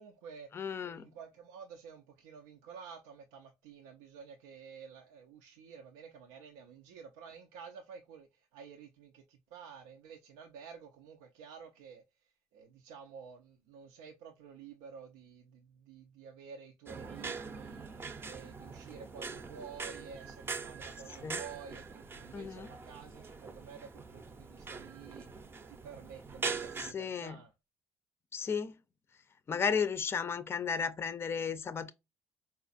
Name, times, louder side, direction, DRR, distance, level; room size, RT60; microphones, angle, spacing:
voice 1, 0.0-27.5, right 6 dB, 90° right, 0.4 m, -51 dB
voice 2, 0.5-1.1 21.2-21.4 22.3-22.7 26.8-27.4 28.3-28.8 29.5-31.9, left 6 dB, 35° left, 0.4 m, -34 dB
sound 1, 16.9-26.9, right 4 dB, 30° right, 0.5 m, -43 dB
4.1 x 2.4 x 2.4 m
supercardioid pair, 70°, 7 cm